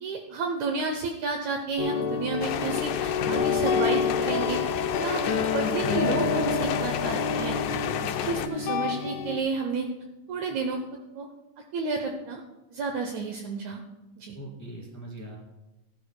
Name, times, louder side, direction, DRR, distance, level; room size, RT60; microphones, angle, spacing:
voice 1, 0.0-4.6 4.9-7.6 8.2-9.9 10.3-10.8 11.2-11.3 11.7-12.4 12.7-13.8 14.2-14.4, right 4 dB, 75° right, 4 dB, 1.8 m, -31 dB
sound 1, 1.8-9.4, left 5 dB, 70° left, 2.0 m, -28 dB
sound 2, 2.4-8.5, left 9 dB, 85° left, 2.3 m, -31 dB
voice 2, 7.7-8.2 14.3-15.4, right 1 dB, 5° left, -2 dB, 1.6 m, -41 dB
16.5 x 11.5 x 2.2 m, 1.0 s
omnidirectional pair, 3.9 m